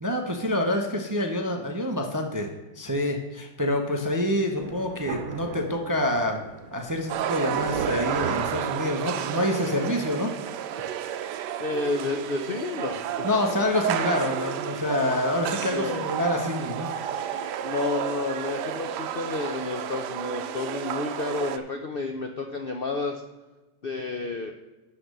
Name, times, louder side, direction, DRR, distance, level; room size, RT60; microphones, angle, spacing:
voice 1, 0.0-6.4 6.7-10.3 13.2-16.9, left 1 dB, 25° right, 2 dB, 0.4 m, -27 dB
Thunder, 4.6-9.4, right 4 dB, 55° right, 1.4 m, -37 dB
sound 1, 7.1-21.6, right 10 dB, 75° right, 1.2 m, -31 dB
voice 2, 11.6-13.3 15.6-16.2 17.6-23.2 23.8-24.5, left 3 dB, 90° left, 4 dB, 0.5 m, -31 dB
11.5 x 4.3 x 6.6 m, 1.1 s
omnidirectional pair, 1.9 m